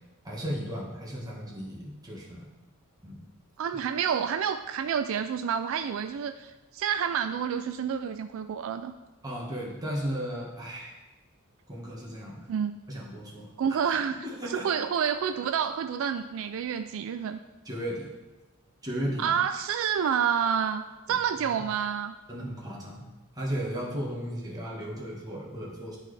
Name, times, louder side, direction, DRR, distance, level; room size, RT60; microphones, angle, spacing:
voice 1, 0.2-2.5 3.0-3.2 9.2-10.9 11.7-12.5 12.9-13.5 13.8-14.0 14.4-14.7 17.6-18.1 18.8-19.3 22.3-23.1 23.3-26.0, equal, 20° right, -3 dB, 1.5 m, -35 dB
voice 2, 3.6-8.9 12.5-12.8 13.6-14.2 14.5-17.4 19.2-22.2, right 7 dB, 65° right, 9 dB, 0.3 m, -29 dB
11.5 x 4.0 x 3.3 m, 1.1 s
head